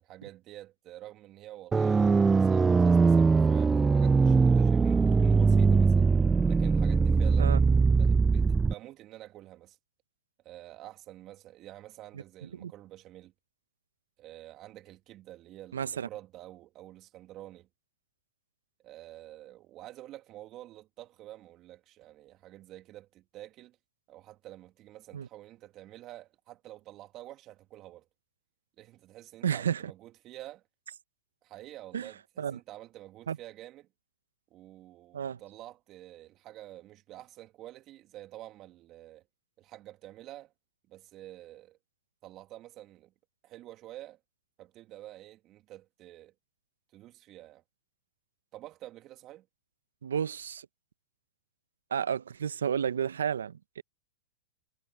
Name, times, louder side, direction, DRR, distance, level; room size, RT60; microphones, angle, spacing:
voice 1, 0.0-6.1 6.5-9.8 10.4-13.3 14.2-17.7 18.8-23.8 24.1-28.1 28.8-30.6 31.4-33.9 34.5-39.2 39.6-40.5 40.9-41.8 42.2-43.1 43.4-44.2 44.6-46.3 46.9-47.6 48.5-49.5, right 14 dB, 40° right, 2.5 m, -48 dB
sound 1, 1.7-8.7, right 4 dB, 15° right, 0.3 m, -22 dB
voice 2, 15.7-16.1 25.1-25.3 29.4-29.8 31.9-32.1 32.4-32.6 33.3-33.4 35.1-35.4 50.0-50.7 51.9-53.8, right 8 dB, 85° right, 0.8 m, -31 dB
hypercardioid pair, 115°, 0 cm